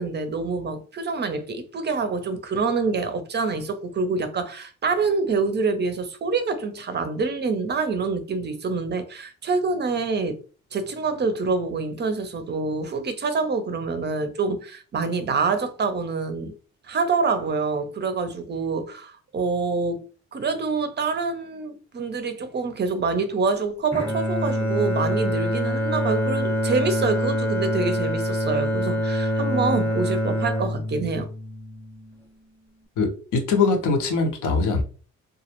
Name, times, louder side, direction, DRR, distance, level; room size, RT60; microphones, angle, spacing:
voice 1, 0.0-10.4 10.7-16.5 16.9-31.3, right 4 dB, 35° right, 0.4 m, -26 dB
Bowed string instrument, 23.9-32.1, equal, 5° left, 0.7 m, -25 dB
voice 2, 33.0-34.8, left 4 dB, 80° left, 0.7 m, -22 dB
2.2 x 2.0 x 2.9 m
cardioid pair, 90°, 30 cm